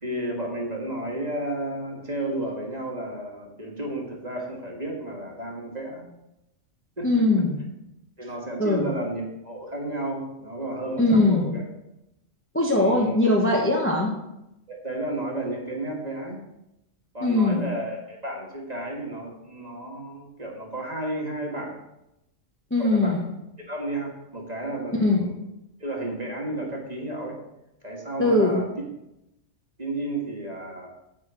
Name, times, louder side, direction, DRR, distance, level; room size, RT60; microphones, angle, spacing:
voice 1, 0.0-6.1 7.0-7.1 8.2-11.6 12.7-13.2 14.7-16.4 17.1-21.8 22.8-23.3 23.6-25.3 25.8-27.4 27.8-28.7 29.8-30.9, right 1 dB, 35° right, -1 dB, 1.8 m, -32 dB
voice 2, 7.0-7.6 8.6-8.9 11.0-11.5 12.5-14.1 17.2-17.7 22.7-23.2 25.0-25.2 28.2-28.6, left 2 dB, 10° left, -1 dB, 1.0 m, -21 dB
9.6 x 4.3 x 7.5 m, 0.89 s
omnidirectional pair, 1.3 m